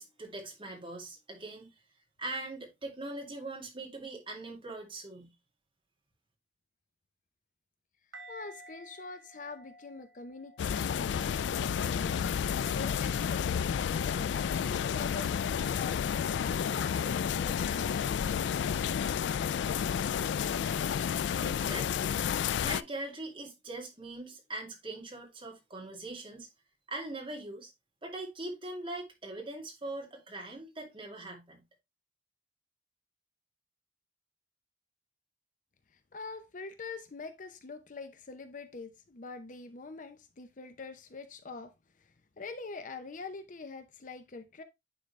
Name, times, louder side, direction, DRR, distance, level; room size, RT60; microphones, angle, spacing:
voice 1, 0.0-1.7 2.2-5.3 21.4-22.2 22.6-26.5 26.9-27.7 28.0-31.6, right 2 dB, 30° right, 2.4 m, -41 dB
sound 1, 8.1-13.1 13.7-13.9, right 2 dB, 90° right, 2.3 m, -55 dB
voice 2, 8.3-11.5 11.8-12.3 12.7-14.3 14.6-18.1 36.1-41.7 42.0-44.6, left 4 dB, 45° left, 0.6 m, -44 dB
sound 2, 10.6-22.8, left 8 dB, 75° left, 0.3 m, -31 dB
9.8 x 3.9 x 3.2 m
head